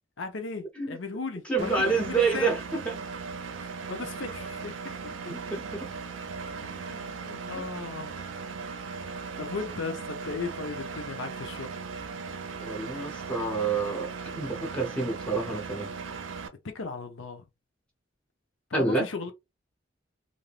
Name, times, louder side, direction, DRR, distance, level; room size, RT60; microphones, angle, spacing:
voice 1, 0.2-2.6 3.6-5.1 6.6-8.1 8.8-8.9 9.4-11.8 16.6-17.5 18.7-19.3, left 4 dB, 85° left, 0.7 m, -37 dB
voice 2, 1.5-2.6 2.9-3.0 5.3-5.6 12.6-15.9 18.7-19.1, right 3 dB, 5° left, 0.7 m, -28 dB
Engine, 1.6-16.5, right 5 dB, 85° right, 0.5 m, -38 dB
3.2 x 2.6 x 2.4 m
head